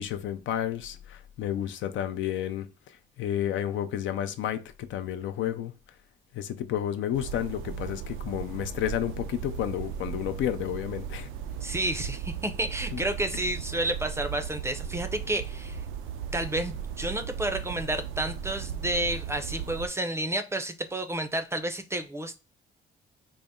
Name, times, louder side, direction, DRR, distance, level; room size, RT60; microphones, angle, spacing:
voice 1, 0.0-2.7 3.2-5.7 6.3-11.3 12.9-13.0, left 11 dB, 75° left, 0.5 m, -31 dB
sound 1, 7.1-19.9, right 7 dB, 90° right, 0.4 m, -37 dB
voice 2, 11.6-15.8 16.3-22.4, right 1 dB, 15° right, 0.5 m, -30 dB
4.0 x 2.0 x 3.5 m
cardioid pair, 90°, 20 cm